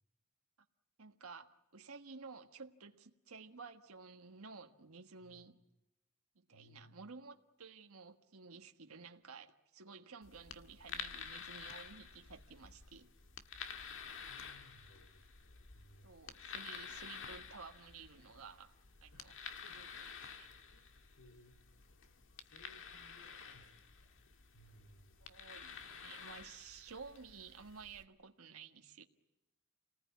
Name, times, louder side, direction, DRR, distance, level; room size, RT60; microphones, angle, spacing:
voice 1, 1.0-5.6 6.3-13.1 16.0-19.3 19.7-20.1 20.4-20.5 23.1-23.2 25.2-29.0, right 5 dB, 75° right, 1.5 m, -53 dB
voice 2, 5.2-5.5 6.5-7.0 14.0-16.1 19.1-19.8 20.7-21.6 22.3-24.1 24.5-25.2, equal, 85° left, 3.5 m, -64 dB
sound 1, 10.2-28.0, left 6 dB, 60° left, 1.8 m, -51 dB
29.5 x 19.5 x 9.5 m
head